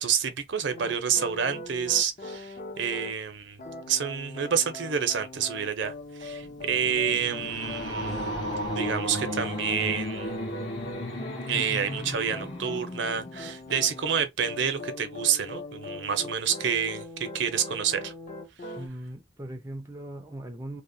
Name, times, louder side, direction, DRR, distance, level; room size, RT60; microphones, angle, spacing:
voice 1, 0.0-3.6 3.9-5.9 6.2-8.3 8.7-10.4 11.5-18.1, right 7 dB, 70° right, 0.6 m, -28 dB
sound 1, 0.7-3.1 3.6-18.9, left 2 dB, 40° left, 0.5 m, -41 dB
sound 2, 6.4-13.7, equal, 85° left, 1.2 m, -34 dB
voice 2, 18.8-20.8, right 1 dB, 15° right, 0.4 m, -39 dB
2.8 x 2.1 x 2.6 m
head